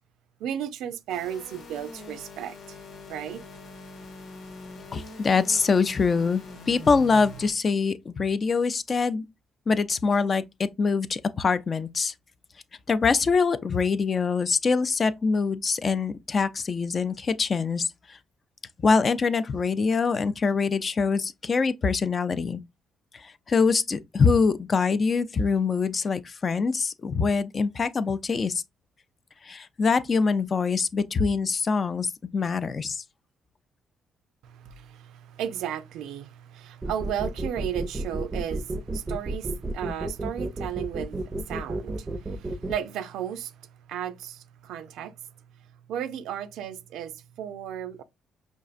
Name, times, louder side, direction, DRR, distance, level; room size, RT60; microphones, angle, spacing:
voice 1, 0.4-2.8 3.1-3.4 34.4-43.6 43.9-45.1 45.9-48.0, right 10 dB, 85° right, 0.4 m, -34 dB
sound 1, 1.1-7.5, left 2 dB, 70° left, 1.0 m, -43 dB
voice 2, 4.9-9.2 9.7-12.1 12.9-18.2 18.8-22.6 23.1-28.6 29.4-33.0, left 5 dB, 40° left, 0.4 m, -24 dB
sound 2, 36.8-42.7, right 2 dB, 25° right, 0.5 m, -31 dB
5.2 x 2.4 x 2.4 m
cardioid pair, 90°, 0 cm